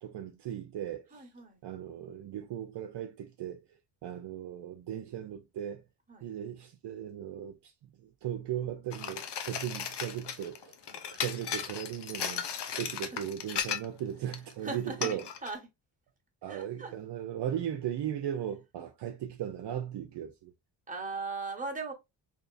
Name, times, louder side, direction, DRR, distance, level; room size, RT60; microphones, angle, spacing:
voice 1, 0.0-1.2 1.6-3.6 4.0-5.8 6.2-7.7 8.0-10.8 11.1-12.5 12.8-15.2 16.4-20.5, right 10 dB, 60° right, 0.6 m, -37 dB
voice 2, 1.1-1.6 6.1-6.3 10.9-11.0 12.6-13.0 14.6-15.6 16.5-16.9 20.9-21.9, right 3 dB, 15° right, 1.2 m, -39 dB
sound 1, 8.9-14.0 14.3-14.5 15.0-15.5, left 8 dB, 60° left, 0.8 m, -36 dB
3.6 x 2.9 x 2.5 m
cardioid pair, 85°, 47 cm